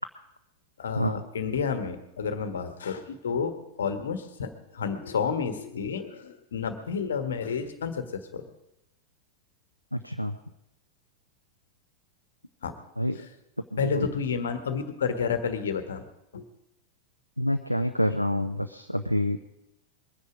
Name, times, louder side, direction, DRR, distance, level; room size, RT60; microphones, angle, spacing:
voice 1, 0.8-8.5 12.6-12.7 13.8-16.0 16.3-16.4, left 6 dB, 65° left, 9 dB, 1.5 m, -30 dB
voice 2, 9.9-10.4 13.0-13.2 13.7-14.1 17.4-19.4, equal, 90° left, 6 dB, 0.6 m, -27 dB
22.0 x 9.8 x 5.0 m, 0.85 s
figure-of-eight pair, 90°, 0 cm